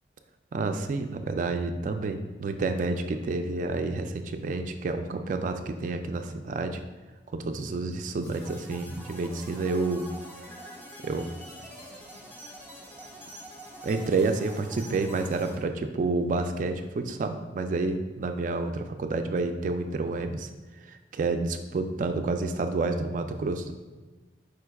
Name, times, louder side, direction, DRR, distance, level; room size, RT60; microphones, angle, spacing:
voice 1, 0.5-6.8 7.3-10.1 11.0-11.3 13.8-20.5 20.9-23.7, right 3 dB, 45° right, 7 dB, 0.3 m, -29 dB
sound 1, 8.2-15.6, equal, 10° left, 0.6 m, -45 dB
4.9 x 4.6 x 2.3 m, 1.3 s
head